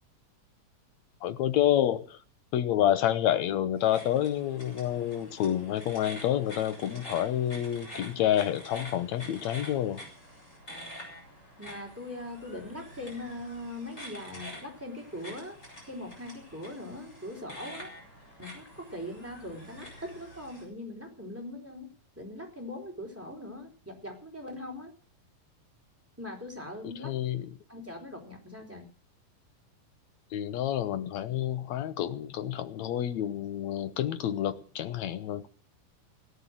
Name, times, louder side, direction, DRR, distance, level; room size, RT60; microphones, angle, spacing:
voice 1, 1.2-2.2 2.5-10.0 26.8-27.5 30.3-35.5, left 11 dB, 70° left, 2.1 m, -28 dB
sound 1, 3.8-20.6, equal, 20° left, 6.7 m, -47 dB
voice 2, 11.6-15.6 15.8-17.9 18.4-21.9 22.2-24.9 26.2-27.1 27.7-28.9, left 1 dB, 5° right, 4.0 m, -41 dB
17.5 x 9.8 x 7.5 m
omnidirectional pair, 3.7 m